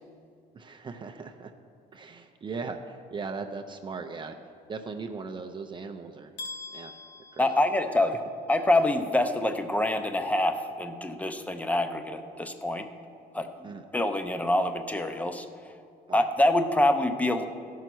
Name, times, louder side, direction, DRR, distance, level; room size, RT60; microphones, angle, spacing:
voice 1, 0.5-1.5 1.9-4.4 4.7-6.3 6.7-6.9 7.3-7.5 13.6-13.8 16.1-16.3, right 4 dB, 30° right, 5 dB, 0.6 m, -38 dB
sound 1, 6.4-8.4, left 3 dB, 85° left, 1.3 m, -43 dB
voice 2, 7.4-8.2 8.5-12.9 13.3-13.5 13.9-15.5 16.1-17.5, left 1 dB, 10° left, 8 dB, 0.7 m, -25 dB
14.0 x 5.6 x 6.1 m, 2.4 s
cardioid pair, 110°, 17 cm